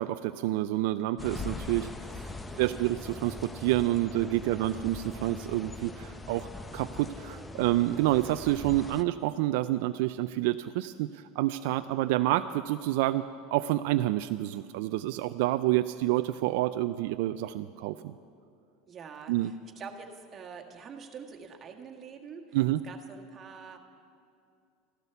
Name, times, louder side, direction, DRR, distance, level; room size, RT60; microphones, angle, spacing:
voice 1, 0.0-2.3 2.6-6.5 6.7-13.3 13.5-18.1 19.3-19.5 22.5-22.8, right 15 dB, 70° right, 10 dB, 0.4 m, -28 dB
sound 1, 1.2-9.0, left 2 dB, 15° left, 0.6 m, -41 dB
voice 2, 2.3-2.9 4.4-4.9 18.9-22.6 22.8-23.8, right 6 dB, 30° right, 2 dB, 1.7 m, -46 dB
14.5 x 12.5 x 6.9 m, 2.5 s
supercardioid pair, 115°, 0 cm